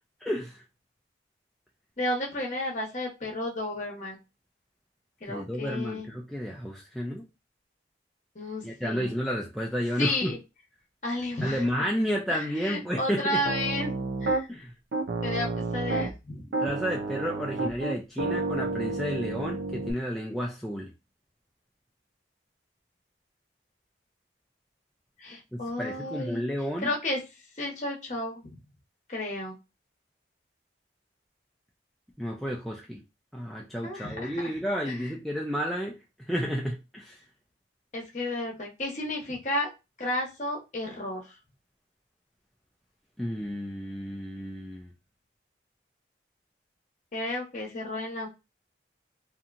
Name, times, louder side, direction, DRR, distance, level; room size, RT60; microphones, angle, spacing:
voice 1, 0.2-0.6 5.3-7.2 8.6-10.3 11.4-13.4 14.5-14.7 16.6-20.9 25.5-26.9 32.2-33.0 33.3-36.0 36.3-37.2 43.2-44.9, equal, ahead, 0.3 m, -31 dB
voice 2, 2.0-4.2 5.2-6.1 8.3-9.1 10.0-10.4 11.0-11.6 12.3-14.0 14.2-14.5 15.2-16.4 25.2-26.4 26.8-27.2 27.6-28.6 29.1-29.6 33.8-34.5 34.8-35.0 37.9-39.7 40.0-41.2 47.1-48.3, left 1 dB, 40° left, 0.9 m, -32 dB
Piano, 13.4-14.4 14.9-16.2 16.5-19.9, right 3 dB, 80° right, 0.5 m, -30 dB
2.8 x 2.6 x 2.5 m
head